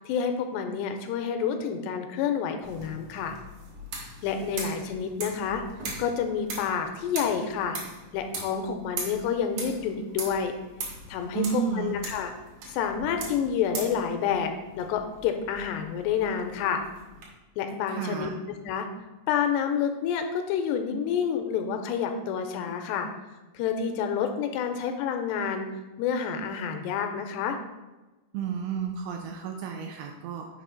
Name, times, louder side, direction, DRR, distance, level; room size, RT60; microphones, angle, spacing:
voice 1, 0.0-3.4 4.2-5.6 6.0-7.8 8.1-10.5 11.1-12.3 12.7-16.8 17.6-18.9 19.3-23.1 23.5-25.7 26.0-27.6, left 7 dB, 85° left, 6 dB, 2.6 m, -29 dB
sound 1, 2.6-17.3, right 3 dB, 65° right, 1.8 m, -41 dB
voice 2, 11.4-11.9 17.9-18.3 28.3-30.5, right 7 dB, 80° right, 3 dB, 2.3 m, -31 dB
6.7 x 4.8 x 3.8 m, 1.2 s
omnidirectional pair, 4.9 m